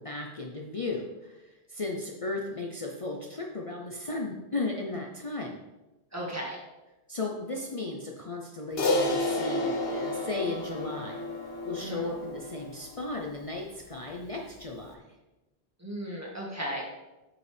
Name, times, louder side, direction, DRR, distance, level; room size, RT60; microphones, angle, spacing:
voice 1, 0.0-5.6 7.1-15.2, left 2 dB, 35° left, -1 dB, 0.7 m, -35 dB
voice 2, 6.1-6.6 11.8-12.1 15.8-16.9, right 1 dB, 15° right, -4 dB, 1.9 m, -35 dB
Crash cymbal, 8.8-13.4, left 2 dB, 65° left, 1.1 m, -31 dB
8.4 x 5.4 x 3.4 m, 1.0 s
omnidirectional pair, 1.1 m